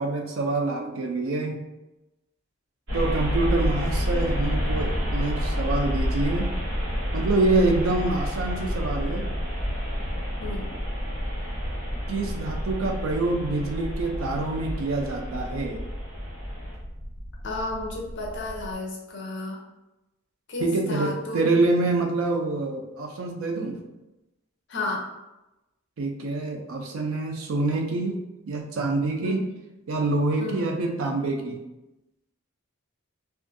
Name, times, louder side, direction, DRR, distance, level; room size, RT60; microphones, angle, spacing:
voice 1, 0.0-1.6 2.9-6.5 7.1-9.3 12.1-15.8 20.6-23.8 26.0-28.2 28.5-29.4 29.9-31.5, right 2 dB, 80° right, 3 dB, 0.4 m, -26 dB
sound 1, 2.9-18.7, equal, 60° right, 1.1 m, -29 dB
voice 2, 10.4-10.7 17.4-19.6 20.5-21.4 24.7-25.0 29.2-29.6 30.4-30.7, left 2 dB, 60° left, -1 dB, 0.5 m, -33 dB
2.5 x 2.4 x 2.5 m, 0.98 s
head